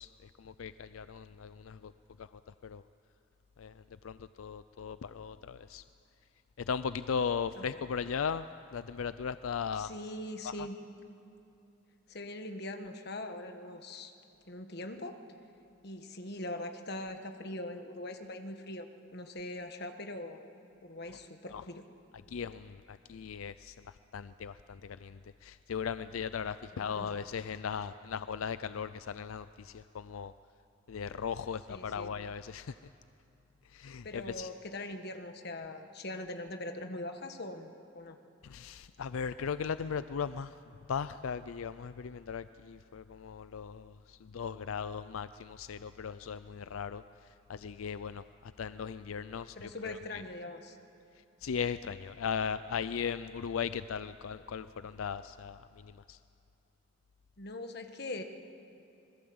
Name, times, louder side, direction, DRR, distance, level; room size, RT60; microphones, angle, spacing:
voice 1, 0.0-1.9 2.2-2.8 3.6-5.8 6.6-8.4 8.7-9.9 10.4-10.7 21.5-21.6 22.3-30.3 30.9-32.7 33.7-34.5 38.4-40.5 40.9-50.2 51.4-56.2, left 6 dB, 85° left, 13 dB, 0.4 m, -38 dB
voice 2, 9.7-10.8 12.1-14.1 14.5-15.2 15.8-20.5 20.8-21.8 26.8-27.2 31.7-32.1 34.0-38.2 49.5-50.8 57.4-58.2, left 1 dB, 50° left, 6 dB, 1.5 m, -42 dB
26.5 x 20.5 x 7.9 m, 2.7 s
head